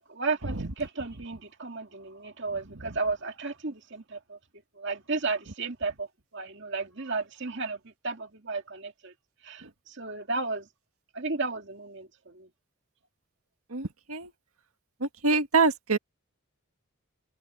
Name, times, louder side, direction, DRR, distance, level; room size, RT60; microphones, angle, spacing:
voice 1, 0.1-4.4 4.8-6.1 6.3-7.8 8.0-9.1 9.4-10.6 11.1-12.5, right 3 dB, 55° right, 2.3 m, -33 dB
voice 2, 13.7-14.3 15.2-16.0, right 4 dB, 80° right, 1.8 m, -25 dB
open air
head